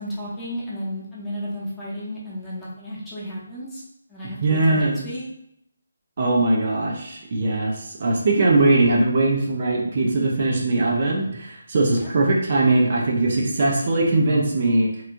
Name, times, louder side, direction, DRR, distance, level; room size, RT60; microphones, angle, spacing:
voice 1, 0.0-3.8 4.1-5.2 11.9-12.1, equal, 10° left, -8 dB, 0.9 m, -33 dB
voice 2, 4.4-5.0 6.2-14.9, right 2 dB, 45° right, -2 dB, 0.7 m, -20 dB
3.3 x 3.0 x 2.6 m, 0.78 s
figure-of-eight pair, 155°, 0 cm